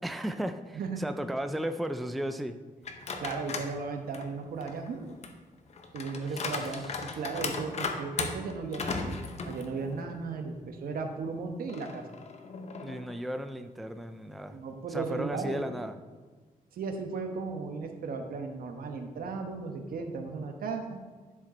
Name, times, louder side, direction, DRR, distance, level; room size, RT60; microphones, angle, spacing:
voice 1, 0.0-2.6 6.3-6.7 12.8-14.6 14.9-16.0, equal, ahead, 8 dB, 0.3 m, -35 dB
sound 1, 2.8-3.7 4.1-10.2 10.6-10.7 11.7-13.2, left 4 dB, 50° left, 0.7 m, -37 dB
voice 2, 3.2-5.1 5.9-9.2 9.4-12.0 14.5-15.6 16.7-21.0, right 4 dB, 85° right, 5 dB, 1.0 m, -36 dB
11.0 x 5.0 x 4.3 m, 1.4 s
wide cardioid pair, 170°, 15 cm